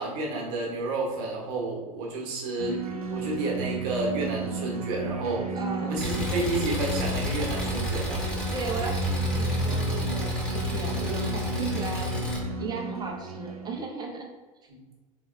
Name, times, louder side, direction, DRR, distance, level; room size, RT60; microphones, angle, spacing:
voice 1, 0.0-5.5 5.8-8.2, right 2 dB, 45° right, -2 dB, 1.2 m, -31 dB
sound 1, 2.6-13.8, right 4 dB, 80° right, 0.6 m, -34 dB
voice 2, 5.5-5.9 8.5-12.1 12.6-14.3, right 4 dB, 20° right, 1 dB, 0.7 m, -36 dB
Engine, 6.0-12.4, left 2 dB, 5° left, 1.1 m, -30 dB
3.8 x 3.1 x 2.6 m, 1.3 s
figure-of-eight pair, 80°, 19 cm